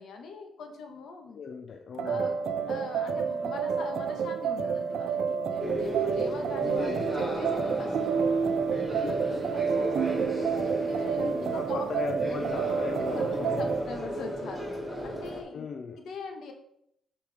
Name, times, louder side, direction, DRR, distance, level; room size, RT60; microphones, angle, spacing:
voice 1, 0.0-1.4 2.0-2.4 2.7-8.3 8.7-10.2 10.6-12.5 13.0-14.7 15.0-15.7 16.0-16.5, left 4 dB, 80° left, 3 dB, 1.4 m, -42 dB
voice 2, 1.3-2.3 6.6-7.1 11.1-13.8 15.5-16.0, left 5 dB, 55° left, 5 dB, 0.6 m, -37 dB
sound 1, 2.0-13.9, right 6 dB, 75° right, 0.5 m, -29 dB
sound 2, 5.6-15.4, equal, 5° left, 1.8 m, -35 dB
8.3 x 5.1 x 3.5 m, 0.76 s
cardioid pair, 125°, 0 cm